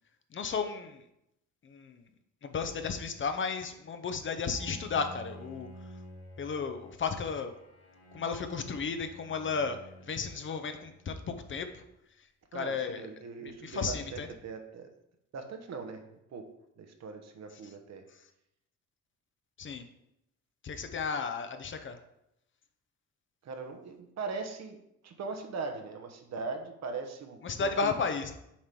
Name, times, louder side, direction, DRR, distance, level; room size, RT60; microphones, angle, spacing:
voice 1, 0.3-1.0 1.6-2.0 2.4-5.7 6.4-7.5 8.1-9.8 10.0-11.8 12.5-13.1 13.4-14.3 19.6-19.8 20.6-22.0 27.4-28.3, left 5 dB, 40° left, 8 dB, 0.7 m, -34 dB
Bowed string instrument, 4.4-11.5, equal, 55° left, 2.6 m, -51 dB
voice 2, 12.5-14.9 15.3-16.5 16.8-18.0 23.4-24.8 25.0-27.9, right 4 dB, 60° right, 5 dB, 1.0 m, -40 dB
7.3 x 3.0 x 5.3 m, 0.81 s
cardioid pair, 90°, 30 cm